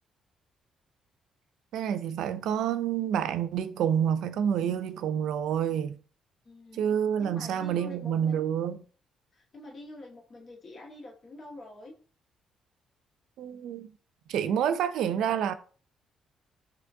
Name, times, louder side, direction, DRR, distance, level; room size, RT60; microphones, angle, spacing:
voice 1, 1.7-5.9 6.7-8.8 13.4-13.9 14.3-15.5, right 9 dB, 80° right, 0.4 m, -28 dB
voice 2, 6.4-6.8 7.2-8.4 9.3-11.9, left 2 dB, 45° left, 1.5 m, -46 dB
5.9 x 2.9 x 2.6 m
cardioid pair, 90°, 0 cm